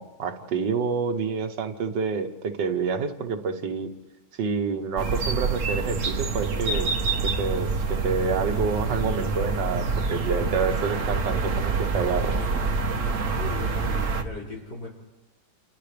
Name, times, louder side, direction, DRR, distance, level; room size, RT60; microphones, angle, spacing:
voice 1, 0.0-3.9 4.4-6.9 7.2-12.4, right 5 dB, 80° right, 7 dB, 1.9 m, -28 dB
sound 1, 5.0-14.2, right 4 dB, 50° right, 1.4 m, -26 dB
voice 2, 13.4-14.9, left 1 dB, 70° left, -5 dB, 6.1 m, -38 dB
29.5 x 28.5 x 3.4 m, 1.1 s
omnidirectional pair, 1.9 m